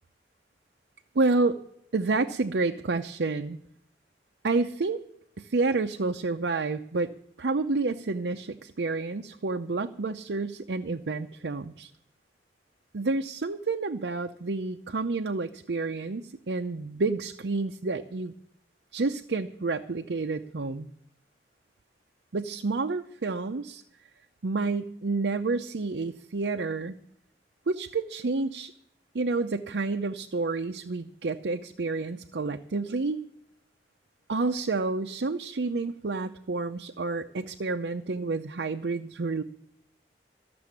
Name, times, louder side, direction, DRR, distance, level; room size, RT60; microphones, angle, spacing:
voice 1, 1.1-1.6 1.9-3.6 4.4-5.0 5.4-7.1 7.4-11.9 12.9-18.3 18.9-20.9 22.3-23.8 24.4-27.0 27.7-28.7 29.1-33.2 34.3-39.4, right 3 dB, 80° right, 6 dB, 0.6 m, -29 dB
14.0 x 6.9 x 9.6 m, 0.74 s
head